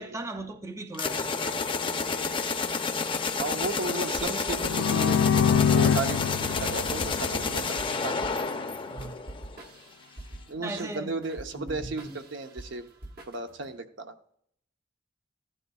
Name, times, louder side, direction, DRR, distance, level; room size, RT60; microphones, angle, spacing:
voice 1, 0.0-1.6 8.9-9.2 10.6-11.1 11.5-12.2, right 2 dB, 15° right, 0.5 m, -38 dB
sound 1, 0.9-9.6, left 4 dB, 25° left, 0.6 m, -30 dB
voice 2, 3.4-5.2 5.5-7.8 8.0-8.4 10.5-12.8 13.3-14.1, right 3 dB, 70° right, 0.8 m, -34 dB
sound 2, 4.2-13.7, right 1 dB, 50° right, 1.1 m, -46 dB
sound 3, 4.6-8.3, left 7 dB, 70° left, 0.3 m, -25 dB
14.5 x 11.0 x 2.3 m
head